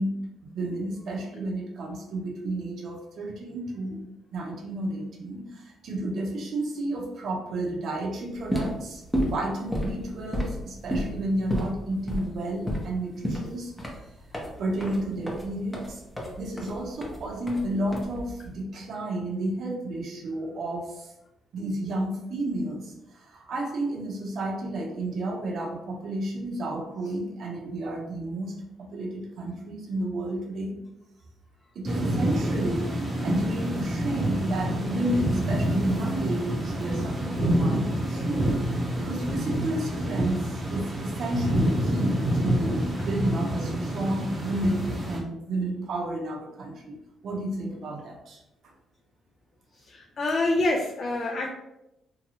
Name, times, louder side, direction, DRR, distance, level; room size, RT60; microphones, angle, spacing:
voice 1, 0.0-4.0 4.3-13.7 14.6-16.0 16.4-21.1 21.5-30.8 31.7-38.4 39.0-48.4, right 1 dB, 65° right, 0 dB, 0.7 m, -31 dB
sound 1, 8.3-18.5, equal, 10° left, 0.7 m, -32 dB
sound 2, 31.8-45.2, right 1 dB, 30° right, 0.7 m, -27 dB
voice 2, 49.9-51.5, left 2 dB, 45° left, 0 dB, 0.4 m, -26 dB
2.8 x 2.3 x 2.8 m, 0.89 s
cardioid pair, 90°, 0 cm